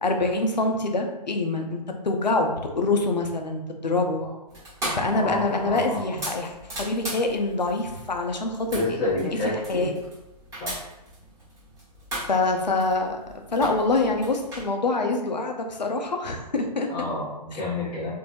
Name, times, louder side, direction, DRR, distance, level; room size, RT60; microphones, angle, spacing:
voice 1, 0.0-4.2 5.0-6.5 6.8-9.0 9.2-9.4 9.7-9.9 12.3-13.2 13.5-16.9 17.5-17.6, left 3 dB, 90° left, 4 dB, 0.6 m, -25 dB
sound 1, 4.5-14.7, right 1 dB, 15° right, 1.2 m, -38 dB
voice 2, 4.8-6.2 8.7-9.9 10.6-10.7 16.9-18.1, left 2 dB, 25° left, -10 dB, 0.9 m, -29 dB
3.0 x 2.6 x 2.6 m, 0.98 s
figure-of-eight pair, 135°, 21 cm